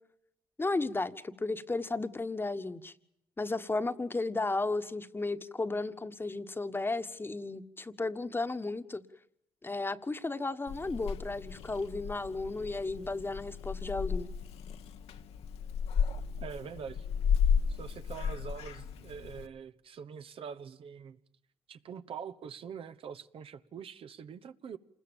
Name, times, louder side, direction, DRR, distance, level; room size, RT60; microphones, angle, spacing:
voice 1, 0.6-2.9 3.4-9.0 9.6-14.3, left 3 dB, 20° left, 1.5 m, -34 dB
Purr / Meow, 10.7-19.5, left 7 dB, 75° left, 1.6 m, -34 dB
voice 2, 16.4-17.1 17.7-21.2 21.7-24.8, right 7 dB, 60° right, 1.2 m, -44 dB
27.5 x 21.0 x 7.2 m
cardioid pair, 80°, 11 cm